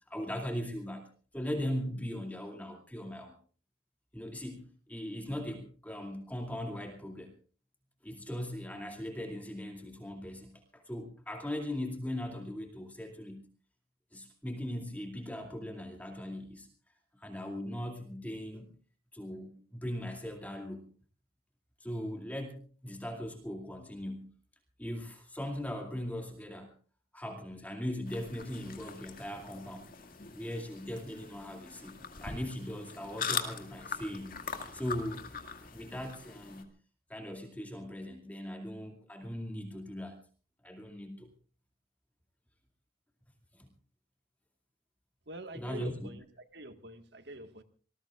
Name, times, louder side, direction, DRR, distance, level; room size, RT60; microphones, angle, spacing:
voice 1, 0.1-1.1 1.3-3.3 4.1-7.3 8.0-13.4 14.1-16.7 17.1-18.7 19.1-20.9 21.8-24.3 24.8-26.7 27.1-29.9 30.3-31.9 32.2-34.4 34.7-35.3 35.7-36.7 37.1-40.2 40.6-41.3 43.5-43.7 45.5-45.9, left 1 dB, 10° left, 2 dB, 2.4 m, -39 dB
sound 1, 28.1-36.6, left 6 dB, 50° left, 2.1 m, -42 dB
voice 2, 45.3-46.3 46.5-47.6, right 1 dB, 70° right, 7 dB, 1.6 m, -45 dB
26.5 x 19.5 x 2.4 m, 0.40 s
head